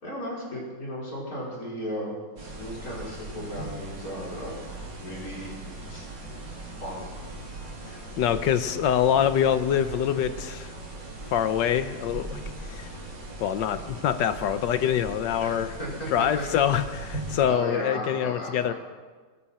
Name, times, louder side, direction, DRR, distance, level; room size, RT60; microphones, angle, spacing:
voice 1, 0.0-4.6 5.0-5.5 5.9-6.1 6.8-7.1 15.4-16.4 17.4-18.7, equal, 50° left, -5 dB, 5.3 m, -35 dB
sound 1, 2.4-17.5, right 2 dB, 85° right, 3.2 m, -39 dB
voice 2, 8.2-10.7 11.3-12.4 12.7-12.9 13.4-15.7 16.1-18.7, left 9 dB, 80° left, 11 dB, 1.5 m, -25 dB
22.0 x 13.0 x 4.3 m, 1.4 s
omnidirectional pair, 1.9 m